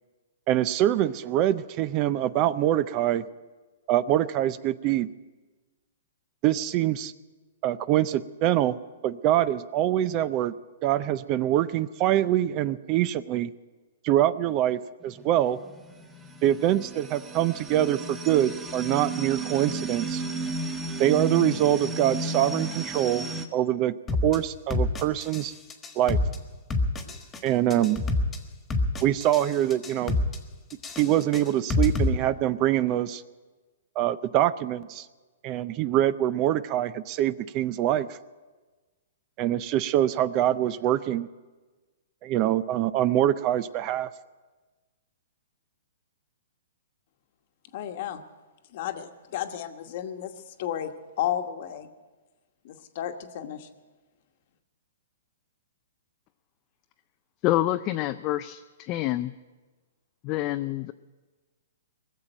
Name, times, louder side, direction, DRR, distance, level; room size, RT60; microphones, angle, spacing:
voice 1, 0.5-3.2 3.9-5.1 6.4-7.1 7.6-8.8 9.0-10.5 10.8-13.5 14.0-15.6 16.4-20.2 21.0-23.3 23.5-23.9 24.2-25.5 26.0-26.2 27.4-28.0 29.0-30.1 31.0-33.2 34.0-35.1 35.4-38.1 39.4-41.3 42.2-44.1, right 12 dB, 35° right, 17 dB, 0.4 m, -24 dB
sound 1, 15.0-23.5, right 2 dB, 10° right, 1.0 m, -34 dB
sound 2, 24.1-24.4 24.7-25.4 25.7-26.4 26.7-27.4 27.7-28.4 28.7-29.4 29.7-30.4 30.7-32.1, left 2 dB, 15° left, 1.5 m, -26 dB
voice 2, 47.7-48.2 48.7-50.9 51.2-51.9 52.6-53.7, left 11 dB, 50° left, 7 dB, 1.1 m, -33 dB
voice 3, 57.4-59.3 60.2-60.9, left 15 dB, 35° left, 9 dB, 0.4 m, -27 dB
20.0 x 7.4 x 9.0 m, 1.3 s
hypercardioid pair, 140°, 0 cm